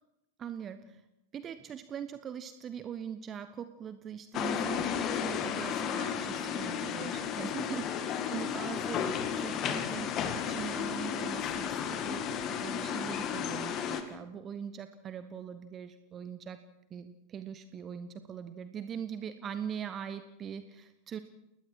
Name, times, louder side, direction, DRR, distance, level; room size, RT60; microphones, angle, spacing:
voice 1, 0.4-1.0 1.3-9.1 9.4-16.6 16.9-21.2, right 8 dB, 25° right, 12 dB, 1.1 m, -42 dB
sound 1, 4.3-14.0, left 8 dB, 35° left, 2.1 m, -33 dB
29.5 x 20.0 x 4.7 m, 0.87 s
figure-of-eight pair, 90°, 0 cm